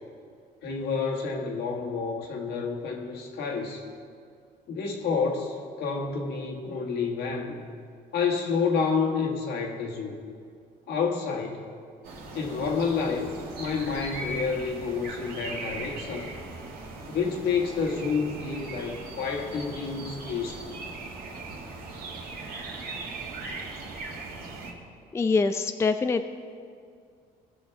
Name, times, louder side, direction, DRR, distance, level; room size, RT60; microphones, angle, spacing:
voice 1, 0.6-3.8 4.7-7.6 8.1-10.2 10.9-11.6 12.3-13.3 13.6-16.3 17.1-20.8, left 5 dB, 75° left, 1 dB, 1.7 m, -29 dB
sound 1, 12.0-24.7, right 3 dB, 65° right, 2.1 m, -39 dB
voice 2, 25.1-26.3, left 4 dB, 15° left, 8 dB, 0.4 m, -24 dB
18.5 x 6.4 x 3.5 m, 2.3 s
cardioid pair, 110°, 17 cm